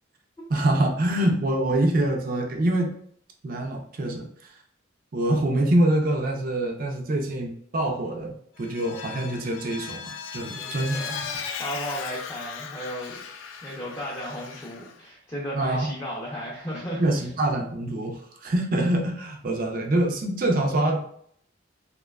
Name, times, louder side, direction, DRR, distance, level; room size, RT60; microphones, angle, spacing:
voice 1, 0.5-2.9 3.4-4.6 5.1-11.3 15.5-15.9 17.0-21.0, right 1 dB, 45° right, 3 dB, 0.4 m, -25 dB
Vehicle, 8.6-14.9, left 6 dB, 80° left, 0.3 m, -37 dB
voice 2, 10.4-11.3 11.6-13.2 13.6-17.0, equal, 15° left, -6 dB, 0.4 m, -35 dB
2.6 x 2.1 x 2.2 m, 0.63 s
head